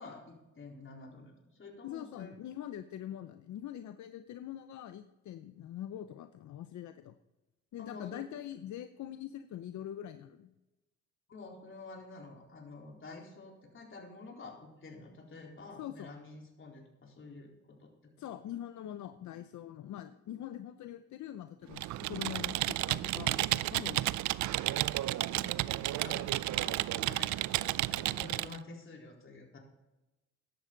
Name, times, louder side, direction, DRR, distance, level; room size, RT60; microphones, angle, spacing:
voice 1, 0.0-2.4 7.8-8.2 11.3-18.4 25.1-29.6, left 3 dB, 40° left, 0 dB, 4.0 m, -49 dB
voice 2, 1.8-7.2 7.7-10.5 15.8-16.1 18.2-24.0, left 11 dB, 70° left, 10 dB, 0.7 m, -43 dB
Computer keyboard, 21.7-28.6, right 16 dB, 70° right, 0.4 m, -32 dB
14.0 x 11.0 x 4.0 m, 1.0 s
cardioid pair, 90°, 30 cm